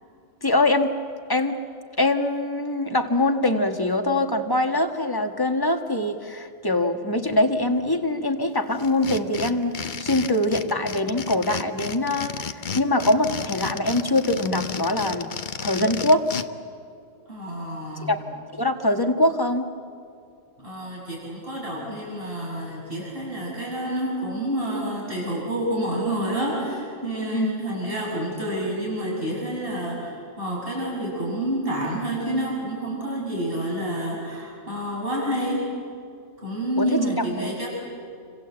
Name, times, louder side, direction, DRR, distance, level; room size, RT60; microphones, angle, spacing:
voice 1, 0.4-1.0 1.3-1.6 2.0-15.3 15.6-16.3 17.9-18.2 18.6-19.7 27.3-27.6 36.8-37.0 37.4-37.6, left 1 dB, 15° left, 5 dB, 1.5 m, -23 dB
sound 1, 8.8-16.4, left 6 dB, 40° left, 0.9 m, -32 dB
voice 2, 17.3-18.1 20.6-35.8 36.4-37.7, right 1 dB, 45° right, -4 dB, 7.6 m, -28 dB
28.5 x 26.0 x 8.0 m, 2.4 s
omnidirectional pair, 1.3 m